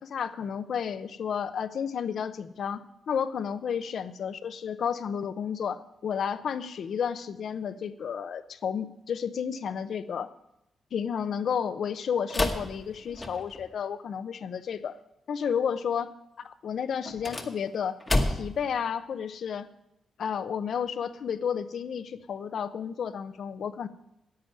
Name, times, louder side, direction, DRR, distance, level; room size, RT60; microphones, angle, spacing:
voice 1, 0.1-10.3 10.9-15.0 15.3-16.1 16.6-18.0 18.3-19.7 20.2-23.9, left 7 dB, 55° left, 13 dB, 0.7 m, -32 dB
sound 1, 12.3-13.7 17.0-18.7, left 2 dB, 15° left, 1.2 m, -30 dB
10.5 x 8.7 x 9.5 m, 0.85 s
wide cardioid pair, 165°, 0 cm